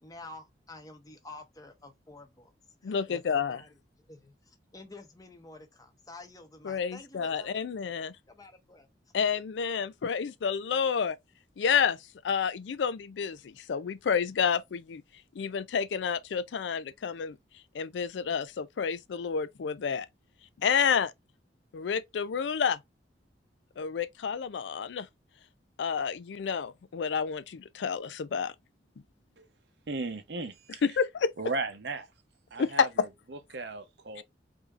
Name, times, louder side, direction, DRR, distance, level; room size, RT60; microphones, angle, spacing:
voice 1, 0.0-2.5 2.8-3.8 4.1-7.7 8.0-8.9, left 2 dB, 20° left, 0.8 m, -49 dB
voice 2, 2.8-3.6 6.6-8.1 9.1-11.2 11.6-12.0 12.2-15.0 15.4-17.4 17.7-20.1 20.6-21.1 21.7-22.8 23.8-25.1 25.8-28.5 30.8-31.3 32.6-32.9, left 6 dB, 85° left, 0.4 m, -29 dB
voice 3, 29.9-30.8 31.4-32.1 32.5-34.2, right 3 dB, 70° right, 0.8 m, -36 dB
5.0 x 2.7 x 2.4 m
head